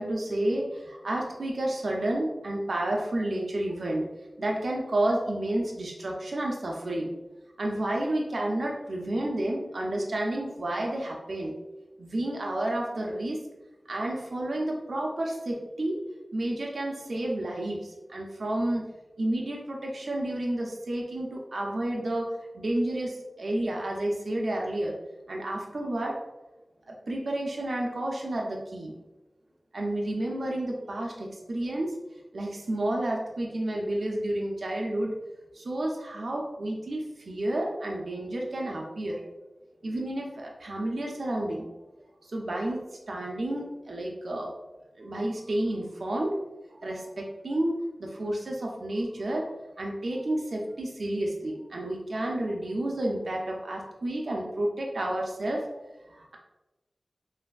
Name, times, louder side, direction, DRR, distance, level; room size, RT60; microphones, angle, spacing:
voice 1, 0.0-7.1 7.6-11.5 12.0-13.4 13.9-18.8 19.2-22.3 22.5-25.0 25.3-26.2 26.9-28.9 29.7-31.9 32.3-35.1 35.5-39.2 39.8-41.7 42.2-44.5 45.0-46.4 46.8-49.5 49.8-55.6 56.1-56.4, right 1 dB, 80° right, -1 dB, 0.5 m, -30 dB
3.3 x 2.5 x 2.3 m, 1.0 s
wide cardioid pair, 80°, 0 cm